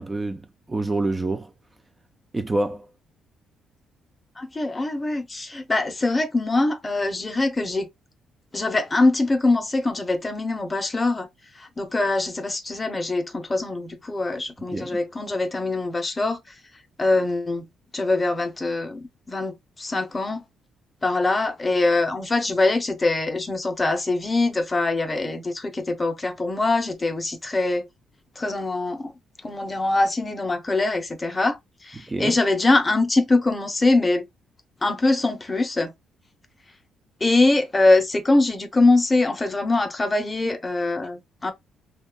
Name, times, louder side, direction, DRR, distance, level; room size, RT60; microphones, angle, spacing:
voice 1, 0.0-1.5 2.3-2.9 14.7-15.0 32.1-32.4, right 2 dB, 20° right, 0.3 m, -27 dB
voice 2, 4.4-7.9 8.5-11.3 11.6-16.4 17.0-17.7 17.9-20.4 21.0-27.9 28.4-29.1 29.4-34.3 34.8-35.9 37.2-41.5, left 2 dB, 25° left, 0.6 m, -23 dB
2.7 x 2.2 x 2.3 m
cardioid pair, 90°, 0 cm